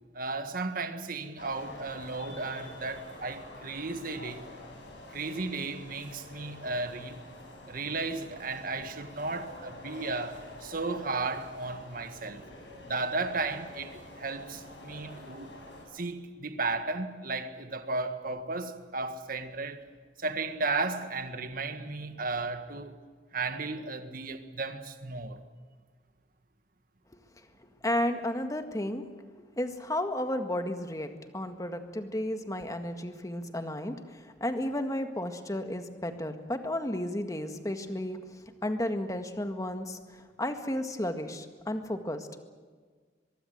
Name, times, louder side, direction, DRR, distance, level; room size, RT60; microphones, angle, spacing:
voice 1, 0.1-4.5 5.1-7.2 7.7-12.4 12.8-15.5 15.9-19.8 20.2-22.9 23.3-25.4, right 3 dB, 50° right, 8 dB, 1.7 m, -34 dB
sound 1, 1.4-15.9, left 1 dB, 85° left, 7.6 m, -47 dB
voice 2, 27.8-29.0 29.6-38.2 38.6-42.4, left 1 dB, 20° left, 7 dB, 1.8 m, -33 dB
23.5 x 23.0 x 8.0 m, 1.5 s
head